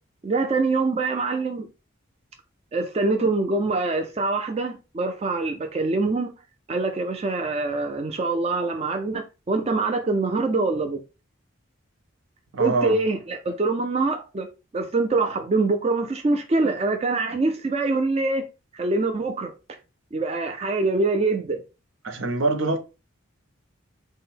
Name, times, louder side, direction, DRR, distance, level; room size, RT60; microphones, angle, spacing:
voice 1, 0.2-1.7 2.7-6.3 6.7-11.0 12.6-14.5 14.7-18.4 18.7-19.5 20.1-21.6, right 3 dB, 30° right, 0.4 m, -24 dB
voice 2, 12.5-13.0 22.0-22.8, right 3 dB, 75° right, 0.7 m, -24 dB
3.7 x 2.1 x 4.1 m
head